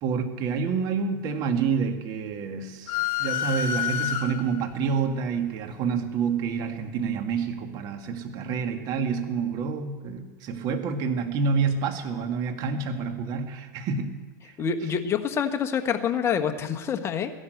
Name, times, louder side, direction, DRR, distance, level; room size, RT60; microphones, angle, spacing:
voice 1, 0.0-14.1 14.5-14.6, right 5 dB, 40° right, 5 dB, 2.0 m, -28 dB
sound 1, 2.9-4.7, left 9 dB, 50° left, 0.8 m, -28 dB
voice 2, 14.6-17.3, left 7 dB, 25° left, 6 dB, 1.3 m, -26 dB
15.5 x 11.0 x 8.0 m, 1.3 s
hypercardioid pair, 125°, 10 cm